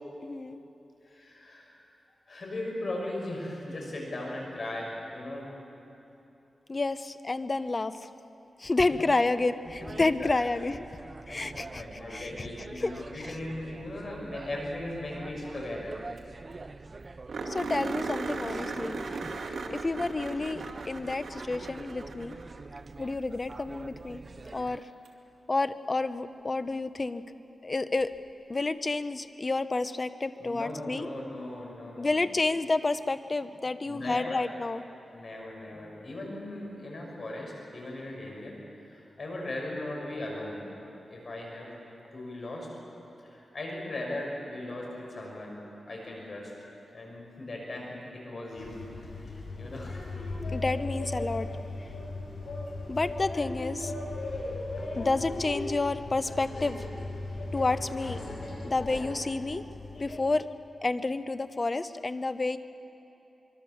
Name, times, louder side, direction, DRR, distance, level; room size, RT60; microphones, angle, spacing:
voice 1, 0.2-0.6 6.7-8.1 8.6-10.8 11.3-11.8 12.1-12.5 12.8-12.9 13.2-13.3 17.5-19.0 19.7-22.4 23.0-24.2 24.5-24.8 25.5-27.2 27.6-28.1 28.5-31.1 32.0-34.8 50.5-51.5 52.9-53.9 55.0-56.9 57.5-58.2 58.6-59.6 60.0-60.5 60.8-62.6, left 3 dB, 35° left, 12 dB, 0.9 m, -30 dB
voice 2, 1.0-1.8 2.3-5.5 9.8-10.6 11.3-15.9 24.7-24.8 30.4-32.2 33.8-34.4 35.1-40.7 41.1-41.7 42.1-42.7 43.2-45.6 45.8-46.5 46.9-50.6, left 1 dB, 55° left, -1 dB, 6.5 m, -38 dB
sound 1, 9.6-24.8, right 3 dB, 40° right, 0.6 m, -45 dB
sound 2, 15.9-16.2 16.6-16.7 17.3-22.7 25.1-25.2 28.0-28.1, right 3 dB, 70° right, 2.3 m, -37 dB
sound 3, 48.6-60.2, left 2 dB, 70° left, 5.3 m, -37 dB
24.5 x 23.5 x 7.2 m, 2.9 s
wide cardioid pair, 90°, 0 cm